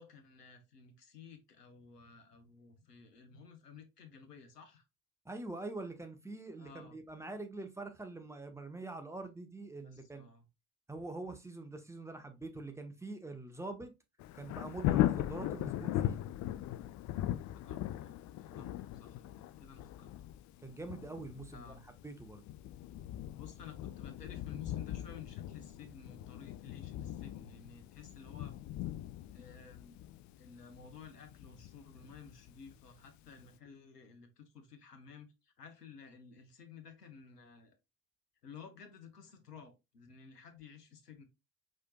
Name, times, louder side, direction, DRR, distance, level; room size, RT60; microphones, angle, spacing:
voice 1, 0.0-4.8 6.6-7.0 9.8-10.5 17.5-20.1 21.5-21.8 23.3-28.6 29.3-30.0 30.4-37.8 38.4-41.2, left 6 dB, 85° left, 0.9 m, -54 dB
voice 2, 5.2-10.2 10.9-13.9 14.4-16.2 18.5-18.7 20.6-21.8 22.0-22.4, right 2 dB, 5° right, 1.1 m, -44 dB
Thunder, 14.2-33.0 33.4-33.5, left 13 dB, 40° left, 0.5 m, -39 dB
4.9 x 4.2 x 2.3 m
figure-of-eight pair, 55°, 46 cm